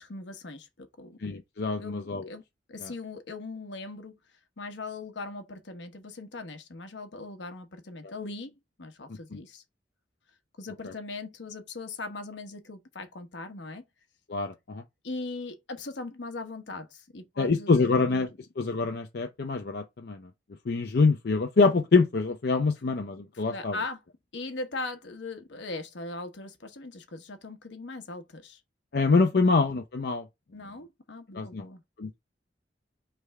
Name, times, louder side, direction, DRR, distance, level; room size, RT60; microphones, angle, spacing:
voice 1, 0.0-1.2 1.8-2.4 2.7-4.2 4.6-8.5 8.8-9.6 10.6-13.8 15.0-18.2 23.3-24.0 24.3-28.6 30.5-31.8, left 3 dB, 80° left, 1.0 m, -39 dB
voice 2, 1.2-2.3 2.8-2.9 9.3-9.4 14.3-14.8 17.4-18.3 18.6-20.2 20.7-23.8 28.9-30.2 31.3-31.7 32.0-32.2, left 4 dB, 60° left, 0.5 m, -25 dB
3.4 x 3.3 x 4.6 m
head